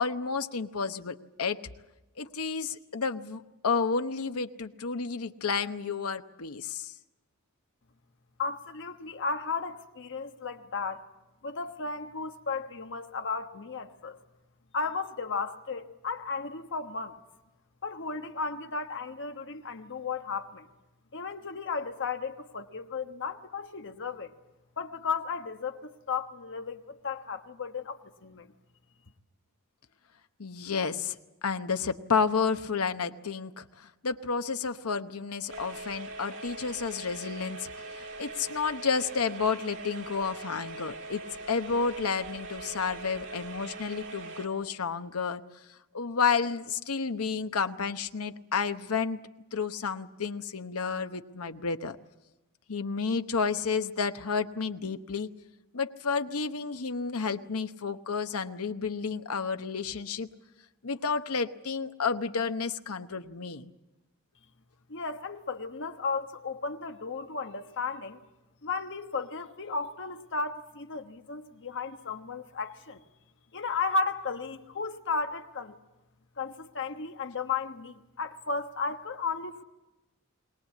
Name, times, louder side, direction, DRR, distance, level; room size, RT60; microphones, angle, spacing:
voice 1, 0.0-1.6 2.2-6.9 30.4-31.2 31.4-45.4 45.9-49.2 49.5-52.0 52.7-55.3 55.7-60.3 60.8-63.7, left 5 dB, 75° left, 1.0 m, -31 dB
voice 2, 8.4-11.1 11.4-14.2 14.7-17.2 17.8-20.7 21.1-24.3 24.8-28.5 64.9-68.2 68.6-73.0 73.5-75.8 76.4-79.6, left 4 dB, 60° left, 1.3 m, -34 dB
sound 1, 35.5-44.5, right 2 dB, 60° right, 2.6 m, -42 dB
22.0 x 19.5 x 8.4 m
head